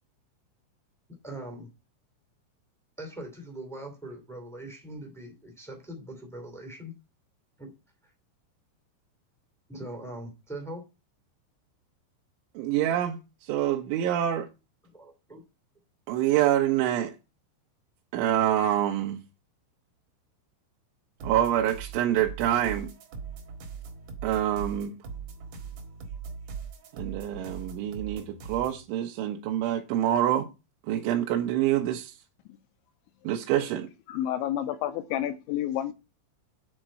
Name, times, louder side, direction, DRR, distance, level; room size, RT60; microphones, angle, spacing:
voice 1, 1.2-1.7 3.0-6.9 7.6-7.7 9.7-10.8 14.8-15.4, right 1 dB, 5° left, 0.5 m, -41 dB
voice 2, 12.6-14.5 16.1-17.1 18.1-19.2 21.2-22.9 24.2-24.9 26.9-30.5 30.9-32.1 33.2-33.9, right 11 dB, 75° right, 3.2 m, -26 dB
sound 1, 21.2-28.8, right 5 dB, 60° right, 2.2 m, -40 dB
voice 3, 34.1-35.9, left 11 dB, 80° left, 2.8 m, -30 dB
10.0 x 4.4 x 7.6 m
omnidirectional pair, 5.8 m